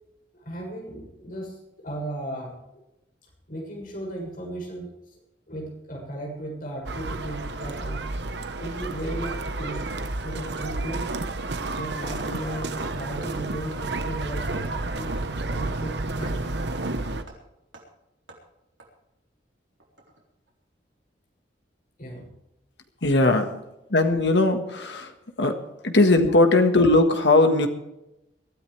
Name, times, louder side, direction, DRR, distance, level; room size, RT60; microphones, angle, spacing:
voice 1, 0.3-2.6 3.5-4.9 5.5-8.1 8.6-11.2 11.7-15.2 15.5-16.7 22.0-22.3 25.7-25.8, right 1 dB, 50° left, -1 dB, 7.0 m, -36 dB
sound 1, 6.8-17.2, right 2 dB, 65° right, 1.2 m, -31 dB
Hammer, 7.5-7.6 8.0-8.1 8.5-8.6 8.9-9.0 9.4-9.5 9.9-10.0 10.3-10.4 10.8-10.9 11.3-11.4 11.7-11.9 12.3-12.4 12.7-12.8 13.2-13.3 13.7-13.8 14.2-14.3 14.7-14.8 15.2-15.3 15.7-15.9 16.3-16.4 16.8-16.9 17.3-17.4 17.7-17.9 18.3-18.4 18.8-18.9 19.8-20.2 20.5-20.6, right 2 dB, 85° right, 4.0 m, -48 dB
voice 2, 23.0-23.4 23.9-25.1 25.4-25.5 25.8-27.7, left 2 dB, 65° left, 6 dB, 1.7 m, -19 dB
22.5 x 13.0 x 3.4 m, 0.89 s
head